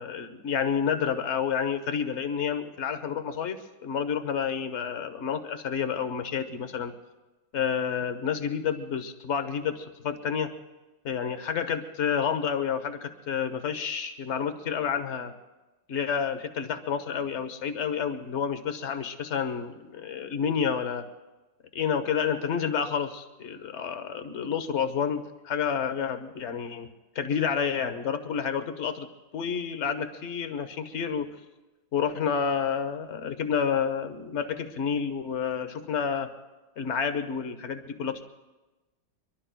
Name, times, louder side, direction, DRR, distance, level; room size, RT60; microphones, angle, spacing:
voice 1, 0.0-6.9 7.5-10.5 11.0-15.3 15.9-21.1 21.7-26.9 27.1-29.1 29.3-31.3 31.9-36.3 36.8-38.2, left 7 dB, 45° left, 9 dB, 1.0 m, -29 dB
25.0 x 22.5 x 2.3 m, 1.1 s
omnidirectional pair, 2.1 m